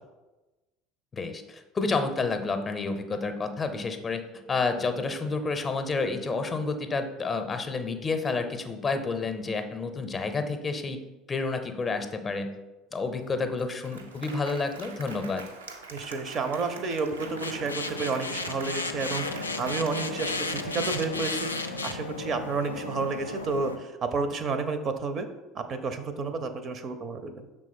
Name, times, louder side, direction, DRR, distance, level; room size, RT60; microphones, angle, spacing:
voice 1, 1.1-4.2 4.5-11.0 11.3-12.6 12.9-15.4, left 4 dB, 30° left, 8 dB, 0.6 m, -30 dB
Applause, 13.2-13.3 13.6-21.1, right 4 dB, 80° right, 0.5 m, -44 dB
voice 2, 15.9-25.3 25.5-27.4, right 4 dB, 40° right, 9 dB, 0.6 m, -31 dB
sound 1, 17.2-23.8, left 3 dB, 85° left, 0.3 m, -34 dB
6.1 x 3.6 x 4.3 m, 1.1 s
figure-of-eight pair, 65°, 0 cm